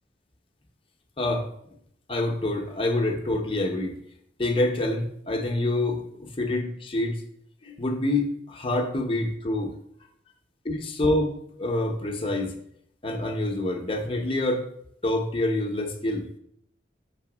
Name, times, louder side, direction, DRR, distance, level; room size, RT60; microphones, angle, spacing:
voice 1, 1.2-1.5 2.1-4.0 4.4-7.2 7.6-9.8 10.6-11.3 11.6-12.5 13.0-14.7 15.0-16.3, left 2 dB, 30° left, 3 dB, 0.7 m, -26 dB
6.1 x 3.7 x 4.9 m, 0.73 s
head